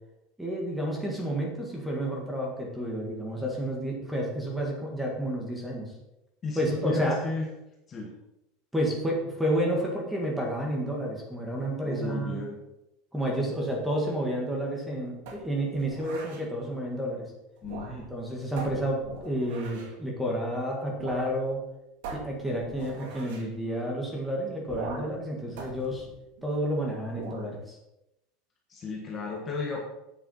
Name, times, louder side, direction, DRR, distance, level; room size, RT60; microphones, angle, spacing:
voice 1, 0.4-5.9 6.6-7.2 8.7-12.4 13.1-17.3 18.1-21.6 22.1-26.1 26.4-27.8, equal, 5° right, -1 dB, 1.8 m, -30 dB
voice 2, 6.4-7.5 7.9-8.1 11.8-12.6 17.6-18.1 28.7-29.8, left 3 dB, 20° left, -1 dB, 1.5 m, -34 dB
sound 1, 15.3-16.5 17.6-18.2 18.6-20.0 21.0-21.3 21.6-21.7 22.0-23.5 24.7-25.2 25.6-26.7 27.1-27.5, right 4 dB, 65° right, 2.2 m, -41 dB
8.7 x 6.8 x 5.6 m, 0.91 s
supercardioid pair, 175°, 0 cm